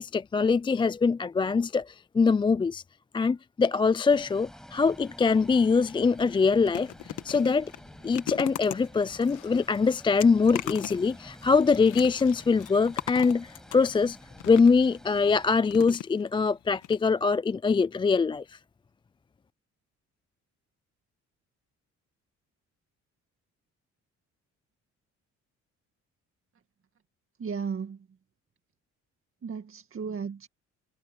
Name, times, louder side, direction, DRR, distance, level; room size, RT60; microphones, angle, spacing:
voice 1, 0.0-2.8 3.1-7.7 8.0-14.2 14.5-18.6, left 4 dB, 15° left, 0.3 m, -23 dB
sound 1, 4.1-15.6, equal, ahead, 7.2 m, -50 dB
sound 2, 6.2-15.0 15.7-16.5 16.8-17.0 17.2-17.3, left 14 dB, 90° left, 1.6 m, -39 dB
voice 2, 27.4-28.1 29.4-30.5, right 6 dB, 45° right, 2.0 m, -34 dB
cardioid pair, 90°, 30 cm